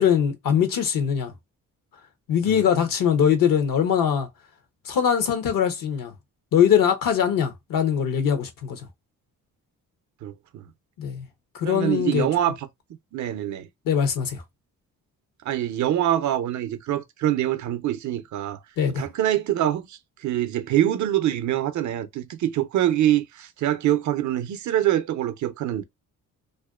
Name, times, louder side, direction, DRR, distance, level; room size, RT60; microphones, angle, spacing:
voice 1, 0.0-1.3 2.3-4.3 4.9-6.1 6.5-8.8 11.0-11.3 11.5-12.3 13.9-14.4 18.8-19.0, left 8 dB, 75° left, 0.7 m, -22 dB
voice 2, 10.2-10.6 11.6-12.7 13.1-13.7 15.4-18.6 19.0-25.8, right 12 dB, 60° right, 0.5 m, -25 dB
2.5 x 2.1 x 2.3 m
cardioid pair, 80°, 34 cm